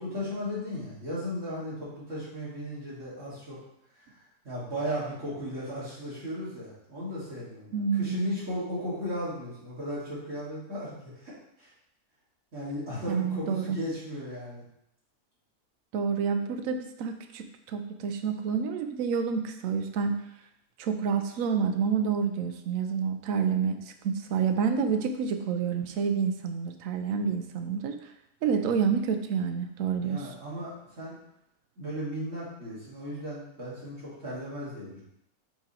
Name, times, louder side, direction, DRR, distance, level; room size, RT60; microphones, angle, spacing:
voice 1, 0.0-3.6 4.4-11.3 11.6-11.7 12.5-14.6 30.0-31.2 31.8-35.0, equal, 50° right, -9 dB, 2.8 m, -36 dB
voice 2, 7.7-8.4 13.1-13.8 15.9-20.2 20.8-28.0 28.4-30.3, right 6 dB, 70° right, 6 dB, 1.0 m, -28 dB
5.9 x 3.7 x 4.3 m, 0.79 s
omnidirectional pair, 1.6 m